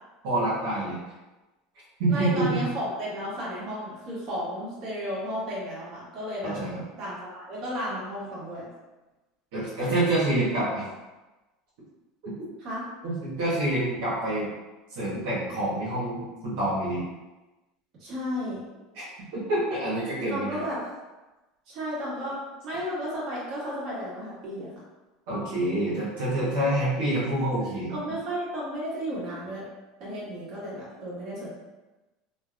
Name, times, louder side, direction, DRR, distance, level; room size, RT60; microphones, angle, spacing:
voice 1, 0.2-1.0 2.0-2.6 6.4-6.8 9.5-10.8 12.2-12.3 13.0-14.5 14.9-17.0 18.9-19.0 19.3-20.6 25.3-28.0, right 1 dB, 80° right, -9 dB, 1.0 m, -27 dB
voice 2, 2.1-6.5 7.0-8.7 12.6-12.8 18.0-18.6 20.3-20.8 21.7-22.4 22.6-24.7 27.2-27.3 27.9-29.6 30.0-31.5, equal, 45° right, -7 dB, 1.5 m, -33 dB
3.2 x 2.4 x 2.4 m, 1.1 s
supercardioid pair, 120°, 0 cm